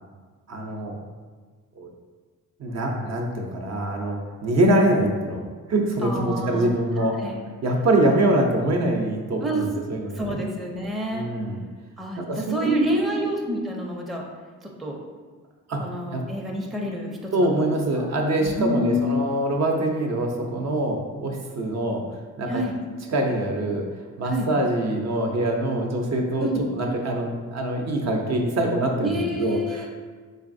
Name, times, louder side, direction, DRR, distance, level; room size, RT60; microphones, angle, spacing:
voice 1, 0.5-0.9 1.8-1.9 2.6-5.4 5.7-7.2 7.6-10.4 11.1-11.6 12.2-13.3 15.7-16.3 17.3-22.0 22.4-22.6 23.1-23.9 24.2-29.9, right 1 dB, 55° right, 1 dB, 0.6 m, -24 dB
voice 2, 6.0-7.4 9.4-9.7 10.2-11.3 12.0-14.2 14.8-15.0 15.8-18.1 18.4-19.2 22.5-22.7 24.2-24.5 26.4-26.7 29.0-29.9, equal, ahead, -1 dB, 0.5 m, -29 dB
4.0 x 3.2 x 2.6 m, 1.5 s
cardioid pair, 90°, 32 cm